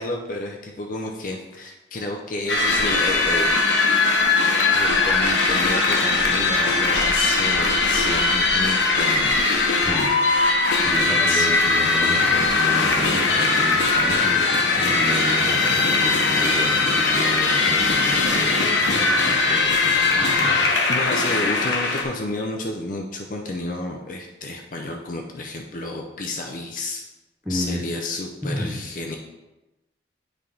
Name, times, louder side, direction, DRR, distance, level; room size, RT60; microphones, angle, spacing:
voice 1, 0.0-3.5 4.7-9.4 11.3-11.5 20.9-27.1 27.5-29.2, left 2 dB, 45° left, 1 dB, 0.6 m, -31 dB
sound 1, 2.5-22.0, left 3 dB, 75° left, 1.0 m, -20 dB
voice 2, 9.8-10.1 10.8-20.7 27.4-27.8 28.5-28.8, equal, 5° right, -5 dB, 1.5 m, -31 dB
9.2 x 3.4 x 3.8 m, 1.0 s
head